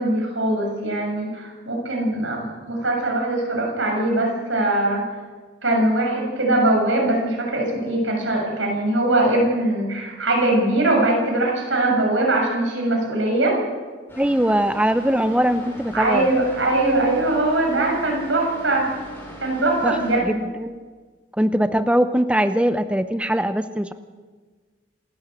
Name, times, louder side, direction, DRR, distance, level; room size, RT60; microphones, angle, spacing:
voice 1, 0.0-5.0 5.6-13.6 15.9-18.9 19.4-20.4, right 2 dB, 75° right, 0 dB, 7.3 m, -21 dB
sound 1, 14.1-20.2, equal, 10° left, 6.3 m, -40 dB
voice 2, 14.2-16.3 19.8-20.8 21.4-23.9, right 1 dB, 5° right, 10 dB, 0.7 m, -21 dB
27.5 x 13.5 x 8.1 m, 1.4 s
head